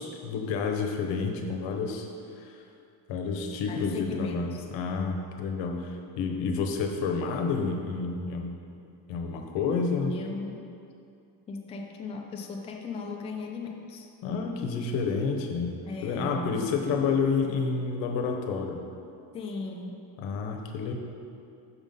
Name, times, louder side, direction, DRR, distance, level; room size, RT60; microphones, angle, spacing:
voice 1, 0.0-2.1 2.4-2.6 3.1-8.6 9.1-10.2 14.2-18.8 20.2-20.9, left 5 dB, 80° left, 4 dB, 0.8 m, -29 dB
voice 2, 3.7-4.6 10.1-10.6 11.5-14.1 15.9-16.7 19.3-20.1, left 3 dB, 15° left, 1 dB, 0.3 m, -37 dB
6.1 x 3.7 x 5.2 m, 2.5 s
cardioid pair, 130°, 44 cm